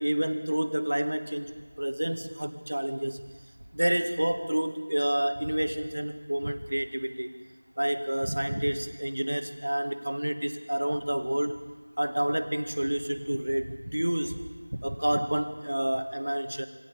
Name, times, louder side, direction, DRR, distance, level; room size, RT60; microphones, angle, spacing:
voice 1, 0.0-3.3 3.7-7.3 7.8-11.6 12.0-14.4 14.7-16.7, right 1 dB, 55° right, 8 dB, 1.9 m, -29 dB
27.5 x 22.5 x 5.1 m, 1.4 s
figure-of-eight pair, 175°, 0 cm